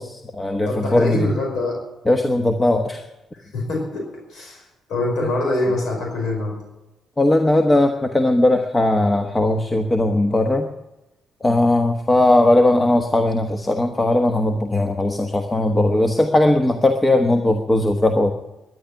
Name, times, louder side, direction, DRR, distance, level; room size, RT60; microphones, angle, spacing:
voice 1, 0.0-1.3 2.1-3.0 5.2-5.3 7.2-10.7 11.4-18.3, left 1 dB, 15° left, 5 dB, 1.2 m, -18 dB
voice 2, 0.6-1.8 3.5-4.6 4.9-6.6, left 2 dB, 75° left, 0 dB, 5.2 m, -24 dB
11.5 x 10.5 x 9.9 m, 0.95 s
cardioid pair, 90°, 0 cm